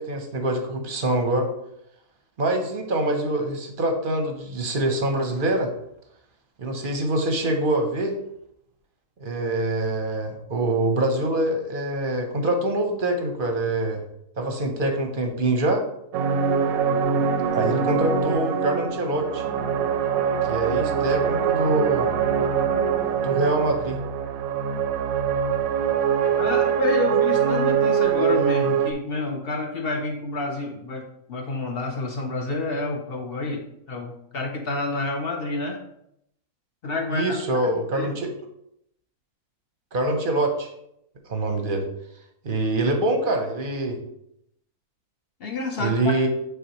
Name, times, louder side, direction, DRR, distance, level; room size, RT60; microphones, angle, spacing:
voice 1, 0.0-1.5 2.4-5.7 6.6-8.1 9.2-14.0 14.4-15.8 17.5-19.4 20.5-22.1 23.2-24.0 37.1-38.3 39.9-40.7 41.3-41.8 42.4-44.0 45.8-46.3, right 2 dB, 45° right, 4 dB, 0.8 m, -24 dB
sound 1, 16.1-28.9, right 7 dB, 70° right, 0.9 m, -23 dB
voice 2, 26.4-35.8 36.8-37.3 37.6-38.1 45.4-46.3, left 3 dB, 50° left, 2 dB, 0.8 m, -29 dB
9.0 x 3.9 x 3.0 m, 0.78 s
omnidirectional pair, 1.6 m